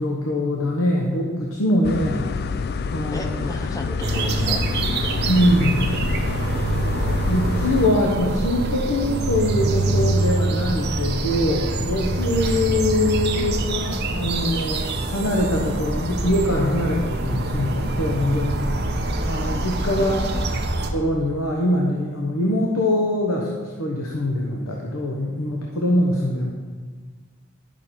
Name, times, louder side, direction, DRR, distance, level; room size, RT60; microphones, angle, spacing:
voice 1, 0.0-2.3 2.9-3.3 5.2-5.9 7.3-18.6 19.3-20.2 20.9-26.5, left 1 dB, 80° left, -1 dB, 1.1 m, -23 dB
sound 1, 1.8-7.9, left 5 dB, 50° left, 0.4 m, -27 dB
voice 2, 3.1-5.3 13.3-14.1 20.0-20.5, left 1 dB, 15° left, 3 dB, 0.8 m, -34 dB
sound 2, 4.0-20.9, right 2 dB, 50° right, 0.8 m, -25 dB
11.5 x 6.2 x 4.4 m, 1.5 s
head